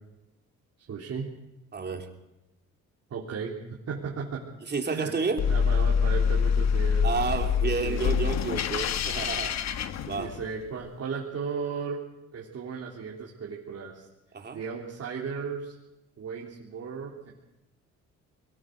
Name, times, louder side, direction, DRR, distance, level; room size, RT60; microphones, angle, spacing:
voice 1, 0.9-1.3 3.1-4.4 4.8-5.1 5.5-8.0 10.2-12.0 12.3-14.1 14.5-15.7 16.2-17.3, right 6 dB, 55° right, -4 dB, 3.3 m, -35 dB
voice 2, 1.7-2.1 4.7-5.4 7.0-9.5 10.0-10.3 14.3-14.6, right 4 dB, 35° right, 3 dB, 3.2 m, -30 dB
sound 1, 5.4-10.7, left 6 dB, 65° left, 1.1 m, -26 dB
22.5 x 17.5 x 6.6 m, 0.97 s
cardioid pair, 90°, 30 cm